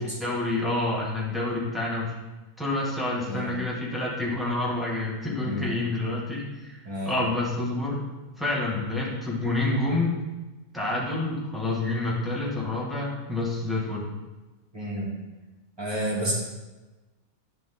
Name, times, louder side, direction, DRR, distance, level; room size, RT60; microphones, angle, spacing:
voice 1, 0.2-2.1 2.6-6.8 7.1-8.0 8.3-10.2 10.7-14.1, left 2 dB, ahead, -6 dB, 1.9 m, -28 dB
voice 2, 5.4-5.7 6.9-7.2 14.7-15.1 15.8-16.3, equal, 20° right, -6 dB, 2.3 m, -30 dB
10.0 x 5.1 x 3.9 m, 1.2 s
omnidirectional pair, 1.4 m